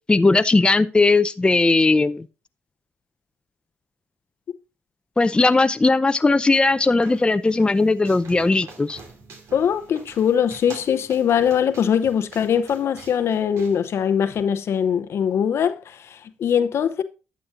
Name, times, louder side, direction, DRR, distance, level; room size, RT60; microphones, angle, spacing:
voice 1, 0.1-2.3 5.2-9.0, left 3 dB, 20° left, 0.6 m, -18 dB
sound 1, 6.3-14.4, right 4 dB, 70° right, 2.7 m, -46 dB
voice 2, 9.5-17.0, left 8 dB, 60° left, 0.8 m, -22 dB
11.0 x 7.8 x 2.6 m
supercardioid pair, 60°, 5 cm